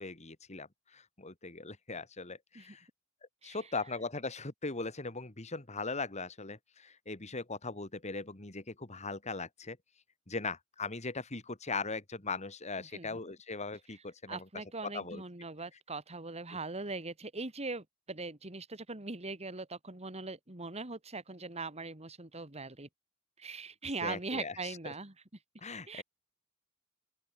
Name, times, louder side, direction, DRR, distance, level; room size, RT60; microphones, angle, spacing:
voice 1, 0.0-2.8 3.4-9.8 10.3-14.5 14.8-15.2 24.0-24.9 25.6-26.0, left 3 dB, 30° left, 2.3 m, -39 dB
voice 2, 12.8-13.2 14.3-22.9 23.4-25.1 25.9-26.0, right 3 dB, 30° right, 2.7 m, -41 dB
open air
head